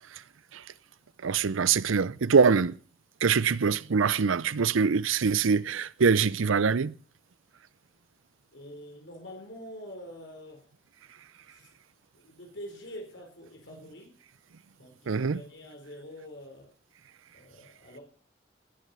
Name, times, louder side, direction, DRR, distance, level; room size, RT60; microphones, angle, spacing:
voice 1, 1.2-2.8 3.2-6.9 15.1-15.4, right 5 dB, 85° right, 0.6 m, -24 dB
voice 2, 8.5-10.7 11.5-11.7 12.1-14.1 14.8-16.7 17.3-18.0, equal, 65° left, 4.2 m, -45 dB
19.5 x 7.4 x 6.9 m
head